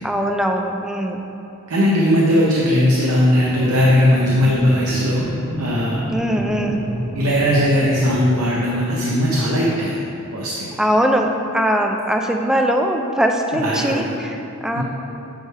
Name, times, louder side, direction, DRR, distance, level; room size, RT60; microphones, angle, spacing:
voice 1, 0.0-1.3 6.1-6.8 10.8-14.8, equal, 5° right, 3 dB, 0.3 m, -21 dB
voice 2, 1.7-5.3 5.6-6.0 7.1-10.0 10.3-10.7 13.6-14.1 14.7-14.8, equal, 80° right, -4 dB, 0.7 m, -18 dB
sound 1, 3.3-9.6, equal, 35° left, 1.1 m, -30 dB
8.1 x 3.3 x 4.6 m, 2.8 s
head